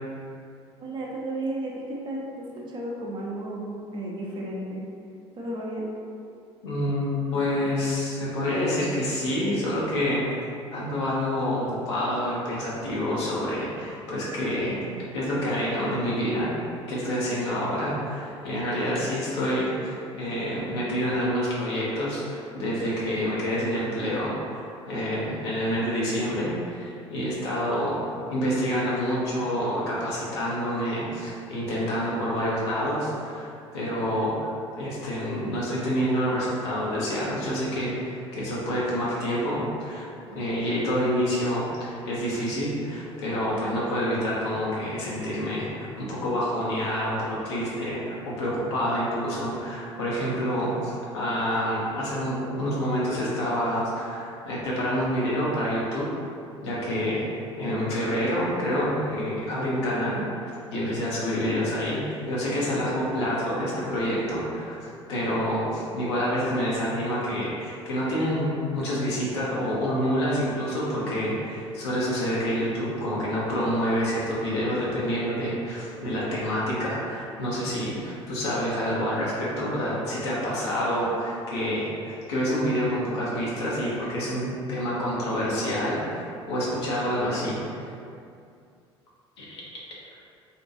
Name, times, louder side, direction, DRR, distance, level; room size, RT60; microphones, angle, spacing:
voice 1, 0.8-4.8 5.3-5.9 40.6-40.7, right 1 dB, 35° right, -3 dB, 0.6 m, -34 dB
voice 2, 6.6-10.3 10.7-14.8 15.1-16.5 16.9-28.0 28.3-33.5 33.7-34.5 34.8-40.0 40.3-56.1 56.6-57.2 57.6-87.8 89.4-89.6, equal, 70° left, -6 dB, 0.7 m, -27 dB
2.6 x 2.2 x 2.6 m, 2.4 s
figure-of-eight pair, 65°, 14 cm